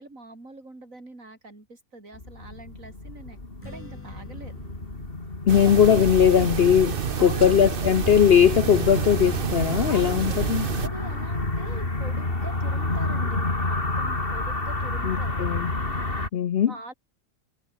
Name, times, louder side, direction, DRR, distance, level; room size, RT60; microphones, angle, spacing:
voice 1, 0.0-3.4 3.6-4.5 7.1-7.7 9.8-10.3 10.8-15.6 16.7-16.9, right 2 dB, 65° right, 5.7 m, -43 dB
sound 1, 2.1-16.3, left 2 dB, 40° left, 3.8 m, -30 dB
Strum, 3.6-9.9, equal, 10° left, 5.9 m, -52 dB
voice 2, 5.5-10.7 15.1-15.7 16.3-16.7, left 8 dB, 55° left, 0.7 m, -19 dB
sound 2, 5.5-10.9, right 6 dB, 45° right, 1.1 m, -28 dB
omnidirectional pair, 1.5 m